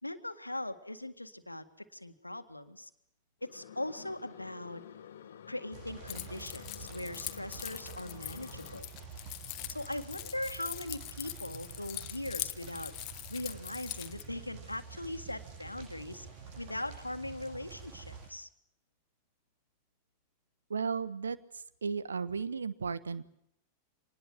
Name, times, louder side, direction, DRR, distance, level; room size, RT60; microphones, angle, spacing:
voice 1, 0.0-2.9 3.4-4.8 5.5-8.9 9.7-12.9 13.3-16.3 16.6-18.5, left 1 dB, 85° left, 9 dB, 1.8 m, -40 dB
sound 1, 3.4-8.8, left 9 dB, 60° left, 1.5 m, -51 dB
sound 2, 5.7-18.3, right 6 dB, 50° right, 7.8 m, -48 dB
Keys jangling, 6.1-14.2, left 16 dB, 40° left, 1.3 m, -43 dB
voice 2, 20.7-23.3, right 5 dB, 75° right, 15 dB, 1.3 m, -35 dB
26.0 x 20.0 x 7.8 m, 0.77 s
figure-of-eight pair, 90°, 0 cm